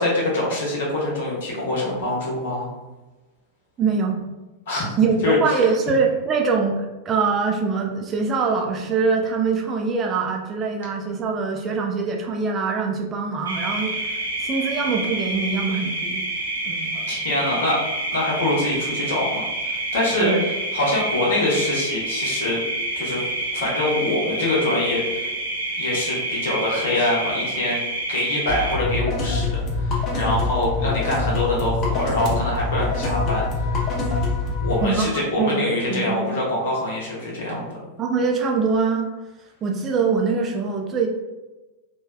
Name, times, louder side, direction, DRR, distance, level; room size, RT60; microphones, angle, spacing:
voice 1, 0.0-2.7 4.7-4.9 5.2-5.6 16.9-20.3 20.7-22.6 22.9-23.2 23.5-25.3 25.8-27.8 28.1-33.7 34.6-37.6, left 1 dB, 60° left, -4 dB, 1.0 m, -24 dB
voice 2, 3.8-4.2 5.0-16.2 16.7-16.9 20.2-20.4 34.8-36.3 38.0-39.1 39.6-41.1, right 4 dB, 25° right, 1 dB, 0.4 m, -23 dB
sound 1, 13.5-28.8, right 2 dB, 75° right, 0.6 m, -28 dB
sound 2, 28.5-34.9, left 3 dB, 35° left, 0.6 m, -24 dB
3.1 x 2.2 x 2.3 m, 1.1 s
figure-of-eight pair, 90°, 0 cm